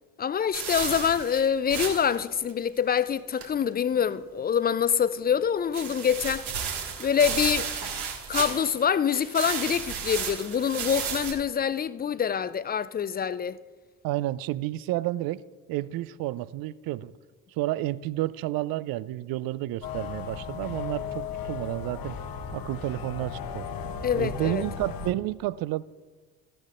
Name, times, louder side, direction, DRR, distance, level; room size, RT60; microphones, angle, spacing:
voice 1, 0.2-6.5 7.0-7.7 8.3-13.6 24.0-24.6, left 7 dB, 25° left, 0.4 m, -25 dB
sound 1, 0.5-2.2 2.5-2.6 3.0-3.1 3.4-3.5 5.7-8.8 9.1-11.3, right 6 dB, 70° right, 1.9 m, -33 dB
voice 2, 14.0-15.4 15.7-17.1 17.6-22.2 22.5-23.6 24.1-25.8, right 15 dB, 55° right, 0.5 m, -30 dB
sound 2, 19.8-25.1, left 7 dB, 55° left, 0.9 m, -36 dB
14.0 x 10.5 x 2.5 m
hypercardioid pair, 50°, 43 cm